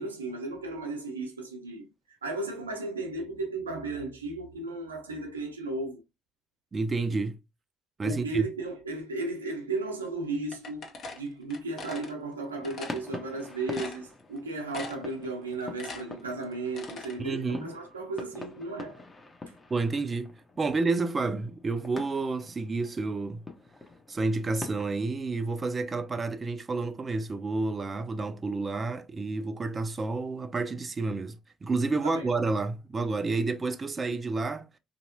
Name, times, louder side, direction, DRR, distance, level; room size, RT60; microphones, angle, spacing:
voice 1, 0.0-6.0 8.0-10.9 11.1-19.0 32.0-32.3, right 2 dB, 90° right, 0.6 m, -35 dB
voice 2, 6.7-7.4 8.0-8.5 17.2-17.7 19.7-23.4 24.1-34.7, right 3 dB, 30° right, 0.4 m, -30 dB
sound 1, 10.5-12.1 12.6-13.0 13.4-13.5 13.7-14.4 14.7-15.1 15.5-17.2, left 3 dB, 55° left, 0.9 m, -41 dB
sound 2, 12.5-25.1, left 3 dB, 25° left, 0.8 m, -45 dB
3.3 x 2.9 x 2.6 m
figure-of-eight pair, 50°, 0 cm